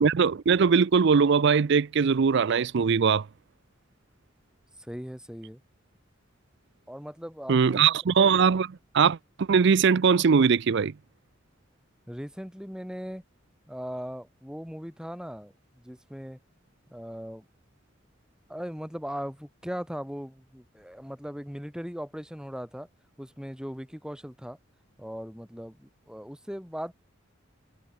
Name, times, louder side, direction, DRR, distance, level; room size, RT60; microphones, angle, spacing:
voice 1, 0.0-3.3 7.5-10.9, right 6 dB, 60° right, 0.5 m, -21 dB
voice 2, 4.8-5.6 6.9-7.9 12.1-13.2 13.7-16.4 16.9-17.4 18.5-22.9 23.2-24.6 25.0-26.9, equal, 5° right, 7.3 m, -39 dB
head